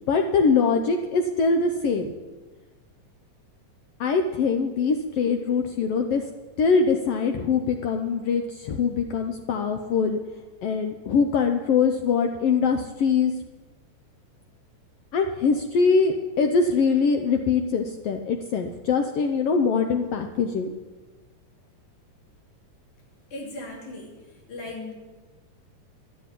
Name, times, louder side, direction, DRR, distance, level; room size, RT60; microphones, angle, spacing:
voice 1, 0.0-2.1 4.0-6.2 6.6-10.2 10.6-13.3 15.1-20.7, left 5 dB, 85° left, 5 dB, 1.3 m, -23 dB
voice 2, 23.3-24.1 24.5-24.9, left 2 dB, 65° left, -1 dB, 4.1 m, -37 dB
12.0 x 7.6 x 9.8 m, 1.3 s
omnidirectional pair, 3.8 m